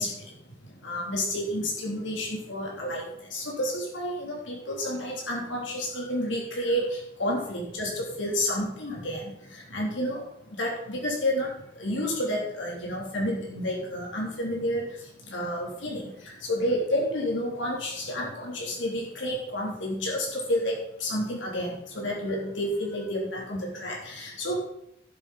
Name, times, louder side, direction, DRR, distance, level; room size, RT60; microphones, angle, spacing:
voice 1, 0.0-24.6, equal, 75° left, -2 dB, 3.6 m, -30 dB
11.5 x 7.5 x 4.3 m, 0.75 s
head